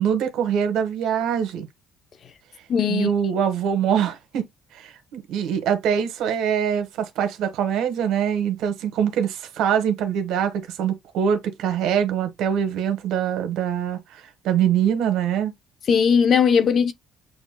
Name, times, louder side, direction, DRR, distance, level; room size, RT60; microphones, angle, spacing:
voice 1, 0.0-1.7 2.9-4.5 4.7-15.5, right 8 dB, 75° right, 1.2 m, -23 dB
voice 2, 2.7-3.1 15.9-16.9, left 6 dB, 45° left, 0.7 m, -18 dB
8.1 x 2.7 x 2.3 m
cardioid pair, 135°, 0 cm